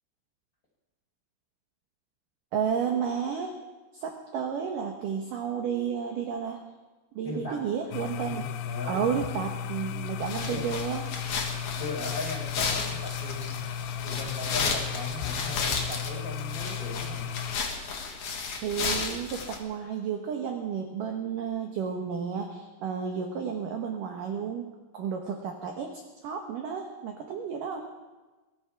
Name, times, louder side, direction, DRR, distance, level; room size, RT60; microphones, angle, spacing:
voice 1, 2.5-3.6 3.9-6.6 7.2-8.4 8.9-11.1 18.6-24.7 24.9-27.9, right 7 dB, 70° right, 3 dB, 2.1 m, -32 dB
voice 2, 7.2-7.6 8.2-9.1 10.4-10.6 11.8-13.7 14.0-17.3, left 2 dB, 20° left, -3 dB, 4.4 m, -37 dB
sound 1, 7.9-17.6, left 8 dB, 80° left, 2.3 m, -35 dB
sound 2, 10.2-19.6, left 5 dB, 55° left, 2.4 m, -33 dB
22.5 x 14.0 x 4.7 m, 1.2 s
omnidirectional pair, 5.3 m